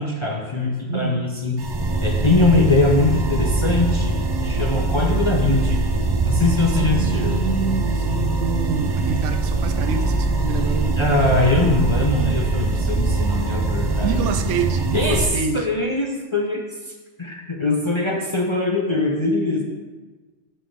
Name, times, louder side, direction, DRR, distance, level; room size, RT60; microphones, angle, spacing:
voice 1, 0.0-1.6 2.0-5.8 6.2-7.4 11.0-14.3 14.9-19.6, left 2 dB, 35° left, -1 dB, 0.5 m, -22 dB
voice 2, 0.9-1.2 6.8-11.2 14.0-15.7, right 6 dB, 80° right, 8 dB, 0.9 m, -27 dB
sound 1, 1.6-15.3, right 3 dB, 30° right, 0.4 m, -22 dB
8.6 x 5.4 x 3.7 m, 1.3 s
omnidirectional pair, 1.3 m